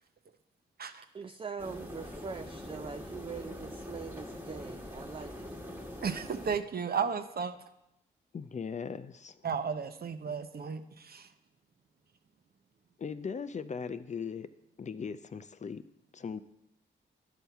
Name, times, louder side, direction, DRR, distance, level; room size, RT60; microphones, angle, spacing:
voice 1, 1.1-5.6, right 5 dB, 25° right, 7 dB, 0.4 m, -42 dB
sound 1, 1.6-6.6, left 1 dB, 10° right, 1.3 m, -43 dB
voice 2, 6.0-7.6 9.4-11.3, right 6 dB, 50° right, 10 dB, 0.7 m, -34 dB
voice 3, 8.3-9.5 10.3-10.4 13.0-14.5 14.8-15.8 16.1-16.4, left 6 dB, 35° left, 12 dB, 0.5 m, -39 dB
10.0 x 5.5 x 4.6 m, 0.87 s
supercardioid pair, 55°, 20 cm